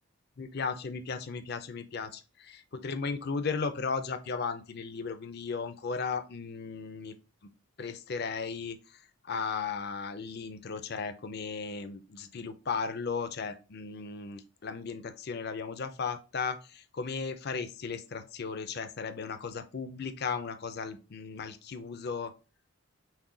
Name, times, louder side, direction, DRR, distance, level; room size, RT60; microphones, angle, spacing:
voice 1, 0.4-7.2 7.8-22.3, left 5 dB, 45° left, 10 dB, 0.5 m, -36 dB
6.0 x 2.3 x 3.8 m, 0.32 s
head